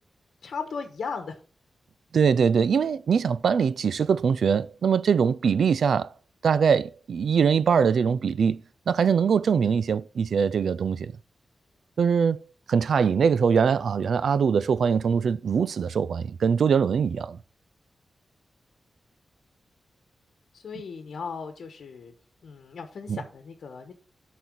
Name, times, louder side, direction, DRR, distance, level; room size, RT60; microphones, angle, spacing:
voice 1, 0.4-1.4 20.5-22.1 22.4-23.9, left 5 dB, 75° left, 1.1 m, -36 dB
voice 2, 2.1-6.1 6.4-11.1 12.0-17.4 23.1-23.2, right 6 dB, 75° right, 0.3 m, -22 dB
9.1 x 4.1 x 6.1 m
wide cardioid pair, 135°, 0 cm